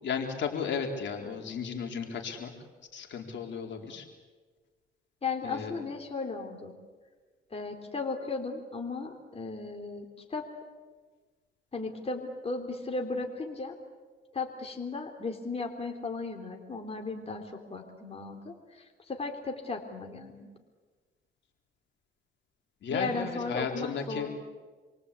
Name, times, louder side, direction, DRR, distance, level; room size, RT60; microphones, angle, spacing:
voice 1, 0.0-2.5 2.9-4.1 5.4-5.7 22.8-24.3, left 6 dB, 65° left, 2 dB, 4.1 m, -34 dB
voice 2, 5.2-6.8 7.5-10.5 11.7-13.8 14.3-20.5 22.9-24.3, left 3 dB, 30° left, 3 dB, 3.6 m, -36 dB
28.5 x 23.5 x 8.4 m, 1.4 s
cardioid pair, 90°, 20 cm